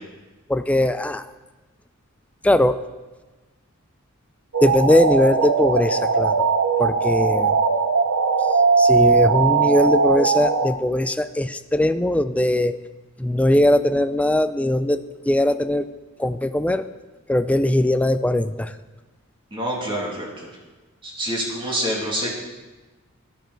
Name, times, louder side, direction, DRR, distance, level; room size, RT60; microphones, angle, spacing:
voice 1, 0.5-1.2 2.4-2.8 4.6-6.5 6.8-7.6 8.8-12.8 13.2-15.9 16.2-16.9 17.3-18.7, left 1 dB, 5° left, 11 dB, 0.3 m, -20 dB
sound 1, 4.5-10.7, right 4 dB, 75° right, 0.8 m, -19 dB
voice 2, 19.5-20.5 21.0-22.3, equal, 25° right, -3 dB, 2.5 m, -27 dB
13.5 x 10.5 x 4.0 m, 1.2 s
head